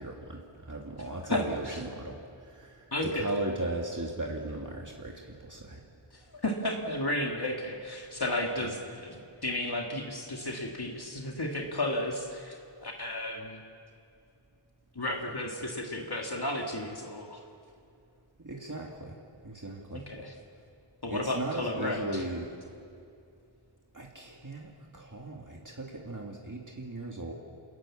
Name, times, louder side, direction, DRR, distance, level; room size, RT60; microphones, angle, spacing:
voice 1, 0.0-2.9 3.1-5.8 8.6-8.7 18.4-19.2 19.4-20.0 21.1-22.5 23.9-27.3, right 2 dB, 40° right, -1 dB, 2.2 m, -37 dB
voice 2, 1.3-1.8 2.9-3.3 6.1-13.6 15.0-17.4 19.9-20.3 21.0-22.2, left 1 dB, 55° left, 1 dB, 2.1 m, -33 dB
28.0 x 18.5 x 7.3 m, 2.5 s
wide cardioid pair, 55°, 47 cm